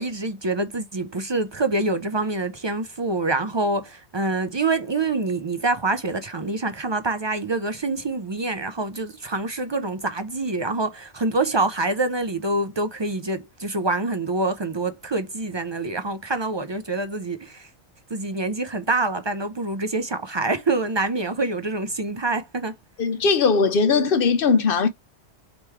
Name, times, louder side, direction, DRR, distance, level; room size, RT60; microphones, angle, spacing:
voice 1, 0.0-17.7 18.1-22.7, right 2 dB, 40° right, 0.4 m, -26 dB
voice 2, 23.0-24.9, left 5 dB, 60° left, 0.8 m, -19 dB
3.4 x 3.0 x 4.5 m
omnidirectional pair, 1.2 m